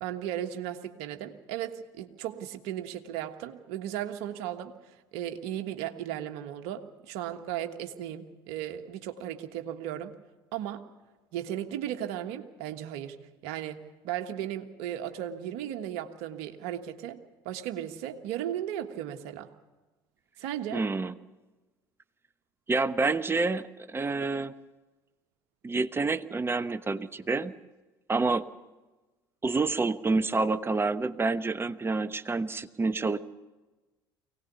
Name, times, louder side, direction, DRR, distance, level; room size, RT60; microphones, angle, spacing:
voice 1, 0.0-4.7 5.1-10.1 10.5-10.8 11.3-17.2 17.4-19.5 20.4-20.9, right 11 dB, 60° right, 6 dB, 1.5 m, -36 dB
voice 2, 20.7-21.1 22.7-24.5 25.6-27.5 28.1-28.5 29.4-33.2, right 3 dB, 20° right, 13 dB, 0.9 m, -28 dB
23.5 x 18.0 x 6.9 m, 1.2 s
hypercardioid pair, 65°, 12 cm